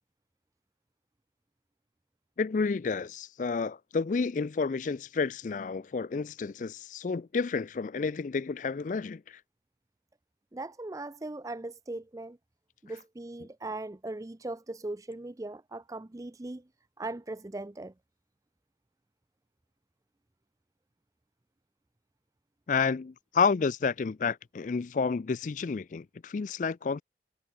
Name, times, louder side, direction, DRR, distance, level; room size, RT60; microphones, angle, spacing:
voice 1, 2.4-9.4 22.7-27.0, left 5 dB, 45° left, 0.4 m, -30 dB
voice 2, 10.5-12.4 12.8-16.6 17.0-17.9, right 2 dB, 20° right, 0.5 m, -39 dB
head